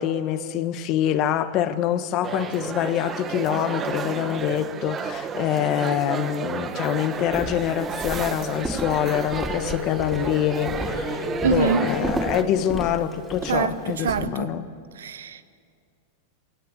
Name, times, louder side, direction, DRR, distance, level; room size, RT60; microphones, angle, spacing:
voice 1, 0.0-14.6, left 11 dB, 45° left, 1.3 m, -25 dB
sound 1, 2.2-12.4, right 6 dB, 25° right, 1.3 m, -32 dB
Walk footsteps, 7.2-14.3, equal, 5° right, 3.0 m, -34 dB
Wind instrument woodwind instrument, 9.4-14.1, left 7 dB, 85° left, 6.6 m, -35 dB
voice 2, 11.4-11.9 13.5-14.5 15.0-15.4, right 6 dB, 90° right, 1.0 m, -25 dB
22.5 x 18.5 x 8.1 m
hypercardioid pair, 120°, 0 cm